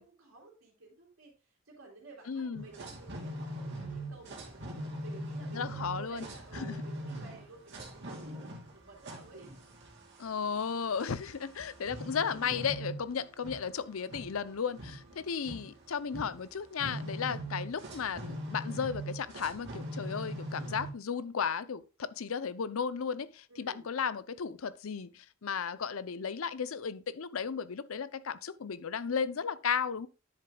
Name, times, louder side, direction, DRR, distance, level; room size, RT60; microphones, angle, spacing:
voice 1, 0.0-9.7 15.0-15.4 23.5-23.9, right 2 dB, 75° right, 2.9 m, -54 dB
voice 2, 2.3-2.7 5.5-6.3 6.5-6.8 10.2-30.1, left 6 dB, 80° left, 0.6 m, -35 dB
sound 1, 2.5-20.9, right 1 dB, 55° right, 2.9 m, -42 dB
10.0 x 7.7 x 2.3 m
head